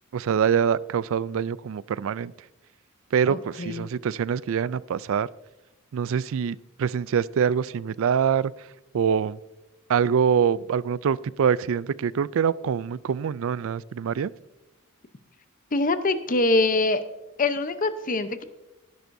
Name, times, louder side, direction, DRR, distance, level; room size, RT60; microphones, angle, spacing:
voice 1, 0.1-2.3 3.1-5.3 5.9-8.5 8.9-9.4 9.9-14.3, right 7 dB, 65° right, 20 dB, 0.3 m, -24 dB
voice 2, 3.3-3.9 15.7-17.0 17.4-18.4, left 2 dB, 40° left, 11 dB, 0.8 m, -24 dB
18.0 x 10.5 x 2.7 m, 1.0 s
head